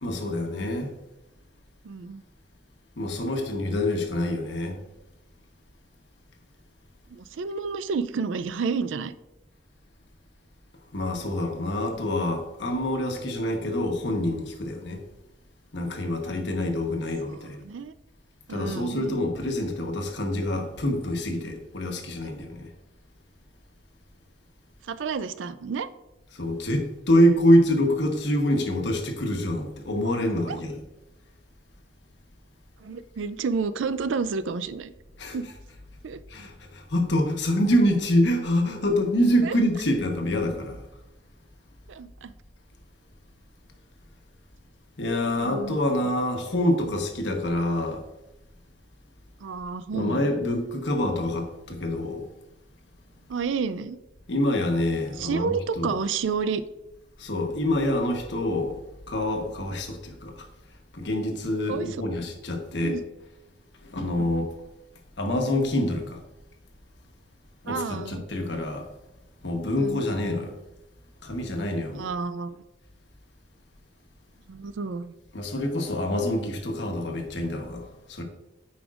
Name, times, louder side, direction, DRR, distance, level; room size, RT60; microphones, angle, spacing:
voice 1, 0.0-0.9 3.0-4.8 10.9-15.0 15.7-17.6 18.5-22.7 26.3-30.8 35.2-35.4 36.3-40.8 45.0-48.0 49.9-52.3 54.3-55.9 57.2-58.8 59.1-60.5 60.9-63.0 63.8-64.5 65.2-66.2 67.6-68.9 69.4-70.5 71.2-72.1 75.3-78.2, left 1 dB, 65° left, 1.1 m, -26 dB
voice 2, 1.8-2.2 7.1-9.1 17.3-17.9 18.5-19.2 24.9-25.9 30.2-30.6 32.8-34.9 35.3-35.5 36.0-36.2 39.4-39.6 41.9-42.3 45.4-45.8 49.4-50.5 53.3-54.0 55.2-56.6 61.7-61.9 62.8-63.0 64.2-64.3 67.7-68.2 69.8-70.0 71.9-72.6 74.5-75.1, right 5 dB, 90° right, 0.4 m, -30 dB
8.6 x 5.1 x 2.5 m
head